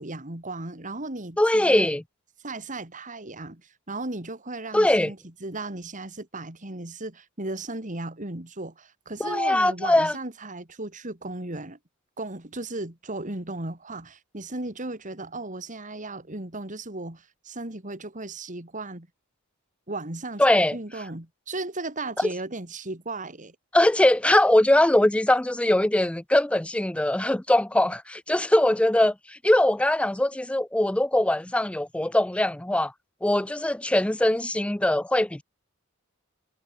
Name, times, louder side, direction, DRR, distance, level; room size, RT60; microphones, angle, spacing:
voice 1, 0.0-1.9 2.4-11.8 12.2-19.1 19.9-23.6, right 2 dB, 35° right, 2.8 m, -36 dB
voice 2, 1.4-2.0 4.7-5.1 9.2-10.1 20.4-20.8 23.7-32.9 33.2-35.4, left 1 dB, 5° left, 0.4 m, -21 dB
head